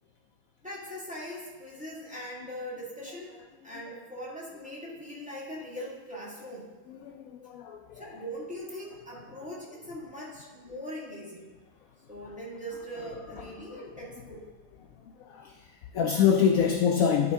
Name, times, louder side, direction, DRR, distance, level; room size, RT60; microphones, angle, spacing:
voice 1, 0.6-3.4 3.6-6.7 7.9-11.5 12.1-14.5, equal, 5° right, -7 dB, 1.9 m, -41 dB
voice 2, 6.9-8.0 13.8-13.9 15.0-17.3, left 7 dB, 75° left, 4 dB, 0.8 m, -26 dB
12.0 x 4.5 x 3.6 m, 1.2 s
omnidirectional pair, 1.9 m